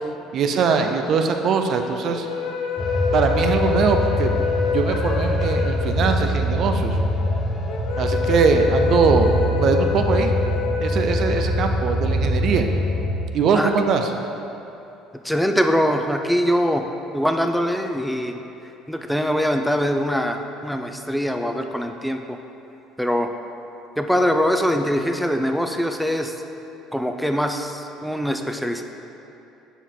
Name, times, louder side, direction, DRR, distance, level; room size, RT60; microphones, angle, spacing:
voice 1, 0.3-2.3 3.1-4.3 4.7-7.0 8.0-10.3 10.8-12.7 13.3-14.1, right 5 dB, 55° right, 5 dB, 0.5 m, -21 dB
sound 1, 2.0-12.5, left 6 dB, 80° left, 0.5 m, -28 dB
sound 2, 2.8-13.1, equal, 30° left, 1.0 m, -23 dB
voice 2, 15.2-16.9 17.1-18.3 18.9-22.4 23.0-23.3 24.0-26.3 26.9-28.8, equal, ahead, 4 dB, 0.5 m, -22 dB
7.0 x 4.5 x 3.8 m, 2.9 s
supercardioid pair, 85°, 0 cm